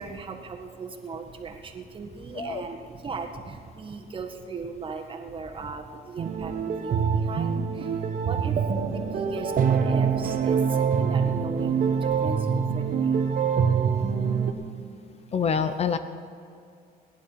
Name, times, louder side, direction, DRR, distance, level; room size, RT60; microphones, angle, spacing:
voice 1, 0.0-13.2, right 4 dB, 30° right, 2 dB, 1.7 m, -38 dB
sound 1, 6.2-14.5, right 6 dB, 50° right, 1.3 m, -25 dB
voice 2, 15.3-16.0, left 6 dB, 40° left, 10 dB, 0.7 m, -26 dB
18.5 x 10.5 x 5.8 m, 2.4 s
cardioid pair, 110°, 17 cm